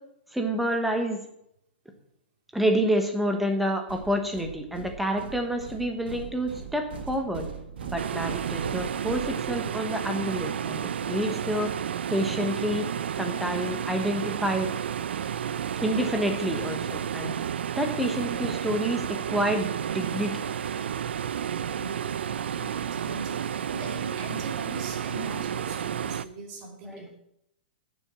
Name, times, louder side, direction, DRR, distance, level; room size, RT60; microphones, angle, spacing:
voice 1, 0.3-1.2 2.5-7.5 7.8-11.7 12.1-12.9 13.2-14.7 15.8-17.3 17.8-20.4 26.9-27.2, equal, ahead, 4 dB, 1.1 m, -28 dB
sound 1, 3.9-9.9, right 6 dB, 65° right, 1.8 m, -41 dB
sound 2, 8.0-26.2, right 8 dB, 80° right, 0.5 m, -31 dB
voice 2, 22.6-27.2, right 2 dB, 25° right, 0 dB, 3.0 m, -41 dB
9.8 x 7.2 x 8.8 m, 0.77 s
hypercardioid pair, 175°, 6 cm